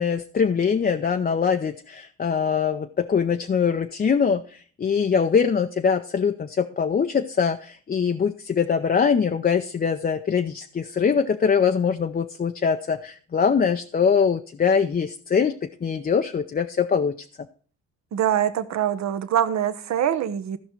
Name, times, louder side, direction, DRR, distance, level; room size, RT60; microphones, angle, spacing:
voice 1, 0.0-17.1, left 6 dB, 30° left, 0.6 m, -23 dB
voice 2, 18.1-20.6, right 10 dB, 65° right, 1.0 m, -24 dB
14.5 x 5.5 x 4.5 m
cardioid pair, 90°, 30 cm